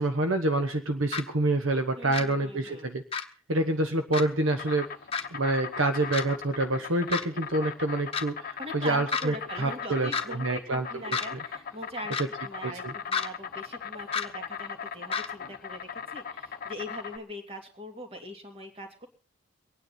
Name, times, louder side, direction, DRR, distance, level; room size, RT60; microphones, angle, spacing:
voice 1, 0.0-3.0 3.5-4.9 5.3-10.9 11.3-11.4 12.6-12.9, right 2 dB, 70° right, 7 dB, 1.1 m, -27 dB
sound 1, 1.1-1.2 2.1-2.2 3.1-3.2 4.1-4.2 5.1-5.2 6.1-6.2 7.1-7.3 8.1-8.2 9.1-9.3 10.1-10.2 11.1-11.3 12.1-12.3 13.1-13.3 14.1-14.3 15.1-15.3, left 5 dB, 30° left, 1.2 m, -29 dB
voice 2, 2.0-2.9 8.6-19.1, equal, 30° right, 4 dB, 2.5 m, -41 dB
Insect, 4.3-17.2, left 6 dB, 45° left, 0.8 m, -39 dB
24.0 x 9.5 x 4.2 m, 0.35 s
head